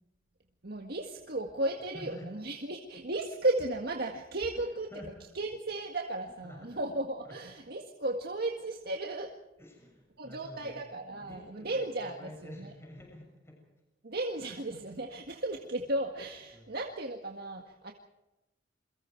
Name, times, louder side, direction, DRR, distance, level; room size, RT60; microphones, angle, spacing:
voice 1, 0.6-4.9 5.3-9.3 10.2-12.7 14.0-17.9, right 2 dB, 60° right, 2 dB, 1.8 m, -35 dB
voice 2, 1.9-2.3 4.9-5.1 6.4-6.6 9.6-10.8 11.1-13.6 16.5-16.7, equal, 15° left, 0 dB, 6.9 m, -49 dB
28.5 x 23.5 x 4.7 m, 0.98 s
head